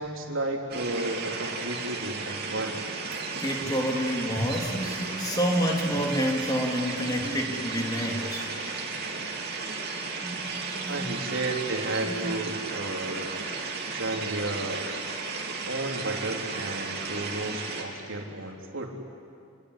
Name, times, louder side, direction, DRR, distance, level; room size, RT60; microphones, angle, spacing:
voice 1, 0.0-2.8 10.9-13.3 13.9-14.9 15.7-19.0, right 2 dB, 70° right, 1 dB, 3.5 m, -33 dB
sound 1, 0.7-17.8, right 4 dB, 45° right, 3.4 m, -34 dB
voice 2, 3.4-8.5 10.2-11.2 12.1-12.4, equal, 20° left, 1 dB, 3.0 m, -29 dB
29.0 x 20.0 x 9.9 m, 2.4 s
head